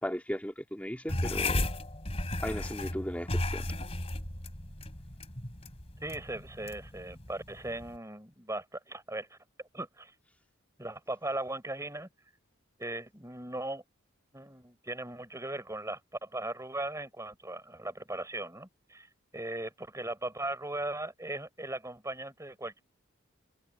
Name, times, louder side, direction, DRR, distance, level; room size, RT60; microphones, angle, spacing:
voice 1, 0.0-1.7 2.4-3.6, equal, 5° left, 3.1 m, -36 dB
Fingers on Tire Spokes stopping tire, 1.1-8.0, left 2 dB, 30° left, 3.3 m, -35 dB
voice 2, 6.0-9.4 9.7-10.1 10.8-12.1 12.8-13.8 14.3-19.1 19.3-22.8, right 2 dB, 15° right, 6.8 m, -38 dB
head